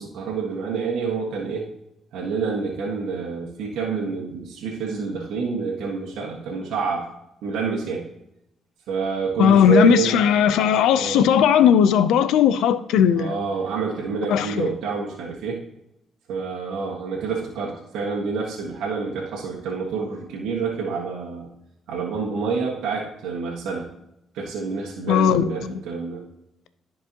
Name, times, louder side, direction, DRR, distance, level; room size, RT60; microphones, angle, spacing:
voice 1, 0.0-1.6 2.1-7.1 7.4-8.1 8.9-10.1 10.9-11.4 13.1-15.6 16.3-21.5 21.9-23.9 24.3-26.3, right 5 dB, 85° right, -4 dB, 1.5 m, -28 dB
voice 2, 9.4-13.3 14.3-14.7 25.1-25.7, left 8 dB, 90° left, 13 dB, 0.5 m, -17 dB
13.5 x 4.7 x 2.9 m, 0.83 s
cardioid pair, 90°, 0 cm